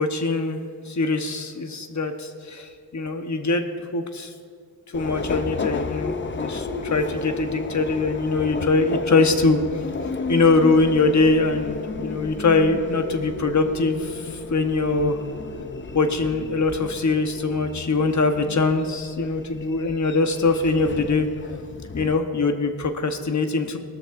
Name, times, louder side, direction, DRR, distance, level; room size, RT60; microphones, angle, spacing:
voice 1, 0.0-3.7 3.9-4.3 4.9-9.6 10.3-15.4 15.9-21.3 21.9-23.8, left 3 dB, 50° left, 6 dB, 0.9 m, -22 dB
Subway metro underground, 4.9-22.2, left 4 dB, 30° left, 0.5 m, -33 dB
19.5 x 13.0 x 2.5 m, 2.1 s
wide cardioid pair, 160°, 38 cm